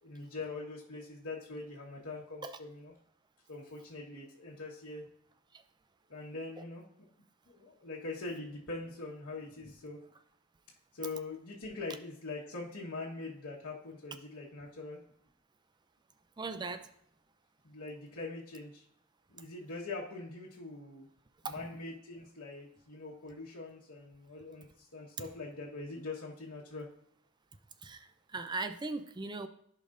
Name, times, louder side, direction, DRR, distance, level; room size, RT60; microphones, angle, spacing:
voice 1, 0.0-2.9 3.5-5.1 6.1-7.1 7.5-10.0 10.9-15.0 17.6-18.8 19.3-21.1 21.4-26.9, left 3 dB, 85° left, -6 dB, 1.4 m, -43 dB
voice 2, 16.4-16.9 21.4-21.5 27.8-29.5, right 3 dB, 20° right, 10 dB, 0.4 m, -38 dB
14.5 x 5.3 x 2.6 m, 0.69 s
head